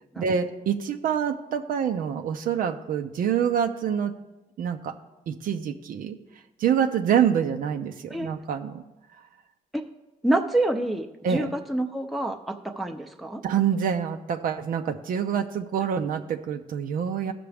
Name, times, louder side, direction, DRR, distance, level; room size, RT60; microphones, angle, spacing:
voice 1, 0.2-4.1 4.6-4.9 5.3-6.2 6.6-8.8 11.2-11.5 13.4-17.3, right 8 dB, 70° right, 6 dB, 0.6 m, -26 dB
voice 2, 10.2-13.4, right 1 dB, ahead, 3 dB, 0.6 m, -27 dB
15.5 x 5.9 x 3.4 m, 1.0 s
cardioid pair, 85°, 15 cm